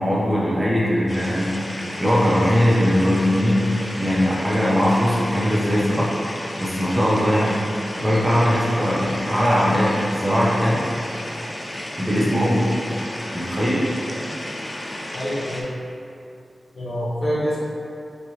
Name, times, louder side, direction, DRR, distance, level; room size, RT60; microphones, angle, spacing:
voice 1, 0.0-1.5 2.0-3.7 4.0-6.1 6.6-7.6 8.0-10.9 12.0-12.6 13.3-13.8, equal, 25° right, -6 dB, 0.7 m, -20 dB
sound 1, 1.1-15.6, left 1 dB, 30° left, 0.4 m, -33 dB
voice 2, 15.1-15.7 16.7-17.6, equal, 60° left, -7 dB, 0.8 m, -26 dB
3.2 x 2.8 x 2.8 m, 2.5 s
wide cardioid pair, 75°, 0 cm